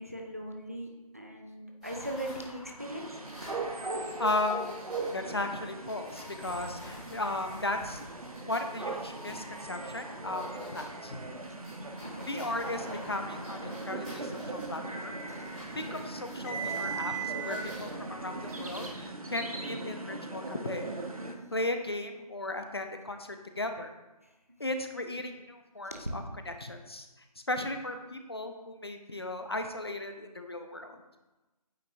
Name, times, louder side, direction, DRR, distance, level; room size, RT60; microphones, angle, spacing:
voice 1, 0.0-3.1 3.4-3.5 12.0-12.3 15.3-15.4 25.9-26.1, right 1 dB, 25° right, 2 dB, 0.4 m, -39 dB
sound 1, 1.8-5.1 5.9-11.0 11.4-18.8, right 5 dB, ahead, 2.3 m, -44 dB
sound 2, 2.8-21.4, right 2 dB, 65° right, 1.0 m, -39 dB
voice 2, 4.2-4.6 5.1-8.0 8.4-11.2 12.2-15.1 15.7-20.9 21.5-23.9 24.6-27.1 27.5-31.0, left 2 dB, 40° left, 6 dB, 0.5 m, -36 dB
8.9 x 6.0 x 2.6 m, 1.1 s
figure-of-eight pair, 160°, 20 cm